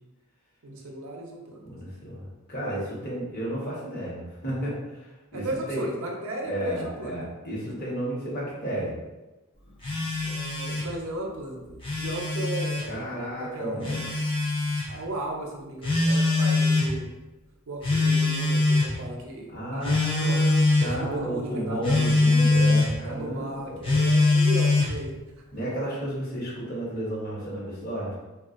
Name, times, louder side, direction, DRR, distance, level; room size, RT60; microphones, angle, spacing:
voice 1, 0.6-1.6 5.3-7.1 10.2-13.1 13.4-14.2 14.8-17.1 17.7-22.2 23.1-25.2, right 1 dB, 65° right, 0 dB, 0.6 m, -36 dB
voice 2, 1.6-5.8 6.4-8.9 12.9-14.1 19.5-23.8 25.5-28.2, right 1 dB, 40° left, -6 dB, 1.0 m, -32 dB
Telephone, 9.8-10.9 11.7-12.9 13.8-14.9 15.8-16.9 17.8-19.0 19.8-20.9 21.8-22.9 23.8-25.0, left 2 dB, 25° left, 0.5 m, -23 dB
3.7 x 2.3 x 2.4 m, 1.1 s
head